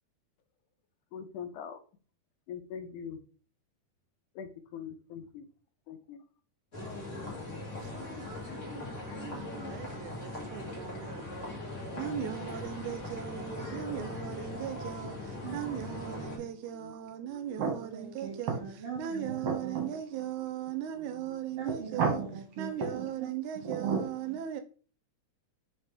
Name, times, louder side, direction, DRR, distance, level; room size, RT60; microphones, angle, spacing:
voice 1, 1.1-1.8 2.5-3.2 4.4-5.5 5.9-6.2 15.5-15.6 16.7-16.9 17.2-17.6 21.0-21.3, left 7 dB, 85° left, 2.2 m, -43 dB
sound 1, 6.7-16.4, left 2 dB, 30° left, 1.8 m, -40 dB
voice 2, 9.1-11.2 12.0-18.6 19.0-22.2 22.6-24.6, right 10 dB, 80° right, 1.9 m, -38 dB
voice 3, 15.4-16.5 17.6-20.0 21.6-23.3 23.6-24.4, right 5 dB, 55° right, 2.3 m, -35 dB
5.6 x 5.1 x 3.4 m
omnidirectional pair, 3.5 m